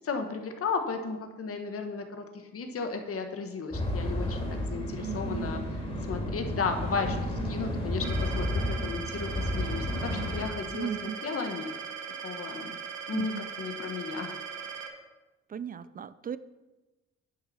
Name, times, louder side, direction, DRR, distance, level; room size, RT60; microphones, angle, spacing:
voice 1, 0.0-5.6 6.1-11.7 12.2-12.8 13.1-13.3 13.6-14.4, left 5 dB, 50° left, 6 dB, 1.2 m, -34 dB
sound 1, 3.7-10.5, left 1 dB, 20° left, 3.1 m, -32 dB
voice 2, 4.9-5.5 10.7-11.2 13.1-13.5 15.5-16.4, right 8 dB, 30° right, 16 dB, 0.4 m, -37 dB
sound 2, 8.0-14.9, right 6 dB, 70° right, 1.4 m, -39 dB
10.0 x 5.7 x 5.6 m, 1.1 s
cardioid pair, 90°, 30 cm